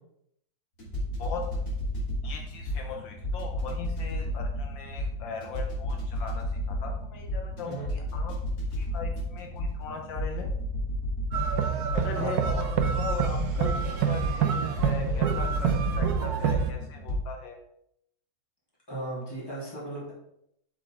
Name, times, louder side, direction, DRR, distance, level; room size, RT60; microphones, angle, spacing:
sound 1, 0.8-17.2, equal, 40° left, 3.2 m, -32 dB
voice 1, 2.2-8.3 8.8-10.5 11.6-15.7 16.0-17.6, left 5 dB, 75° left, 2 dB, 1.6 m, -39 dB
sound 2, 11.3-16.7, right 8 dB, 60° right, 1.2 m, -27 dB
voice 2, 18.9-20.1, right 2 dB, 10° left, -7 dB, 3.3 m, -36 dB
7.8 x 7.3 x 3.7 m, 0.76 s
omnidirectional pair, 2.1 m